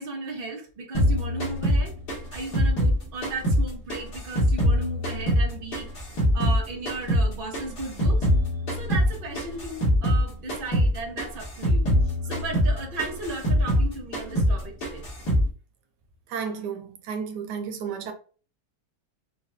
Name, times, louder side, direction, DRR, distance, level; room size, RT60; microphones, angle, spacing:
voice 1, 0.0-1.9 2.3-5.9 6.3-8.3 8.7-15.0, right 3 dB, 40° right, 1.0 m, -35 dB
sound 1, 0.9-3.6 3.9-6.6 6.9-10.2 10.5-10.9 11.2-13.9 14.1-14.6 14.8-15.5, equal, 80° left, 2.1 m, -23 dB
voice 2, 16.3-18.1, right 6 dB, 85° right, 1.2 m, -32 dB
4.9 x 2.3 x 2.6 m
omnidirectional pair, 1.7 m